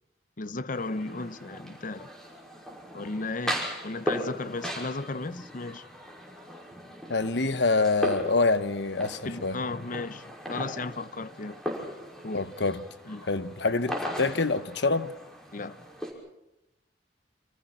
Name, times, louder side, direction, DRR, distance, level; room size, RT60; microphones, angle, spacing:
voice 1, 0.4-2.1 2.9-5.9 9.2-11.6 12.2-12.5 13.1-13.3 15.5-15.8, left 3 dB, 50° left, 0.9 m, -35 dB
sound 1, 0.7-16.1, equal, 5° left, 5.8 m, -38 dB
voice 2, 7.1-9.6 12.3-12.8 13.3-15.1, left 3 dB, 75° left, 1.1 m, -26 dB
29.0 x 26.5 x 4.6 m
head